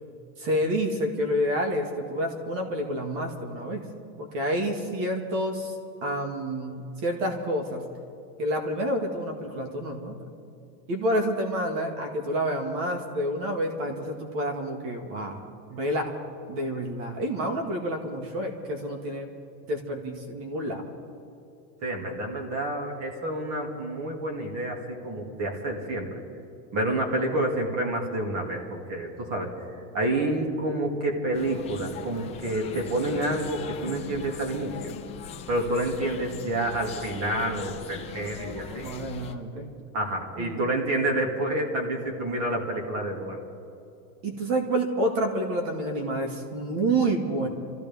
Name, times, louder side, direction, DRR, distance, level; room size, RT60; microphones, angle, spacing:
voice 1, 0.4-3.9 4.2-5.8 6.0-7.8 8.4-10.2 10.9-15.4 15.7-16.1 16.5-19.3 19.7-20.8 38.7-39.7 40.4-40.6 44.2-47.5, right 1 dB, 50° right, 3 dB, 2.0 m, -28 dB
voice 2, 21.8-26.2 26.7-29.5 29.9-34.9 35.5-38.9 39.9-43.4, right 1 dB, 30° right, 2 dB, 2.3 m, -28 dB
sound 1, 31.3-39.3, left 7 dB, 15° left, 0.5 m, -40 dB
26.5 x 15.0 x 3.6 m, 2.7 s
supercardioid pair, 150°, 50 cm